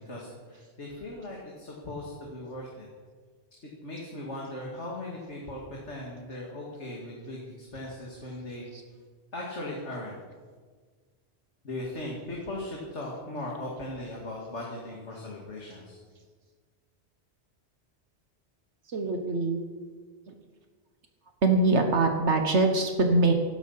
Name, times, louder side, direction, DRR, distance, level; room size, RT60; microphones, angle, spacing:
voice 1, 0.0-2.9 3.8-5.6 5.8-8.7 9.3-10.2 11.6-16.0, left 1 dB, 85° left, -3 dB, 2.6 m, -38 dB
voice 2, 18.9-19.6 20.3-20.4 21.4-23.3, right 2 dB, 80° right, 5 dB, 1.6 m, -23 dB
17.0 x 12.0 x 5.8 m, 1.6 s
omnidirectional pair, 1.2 m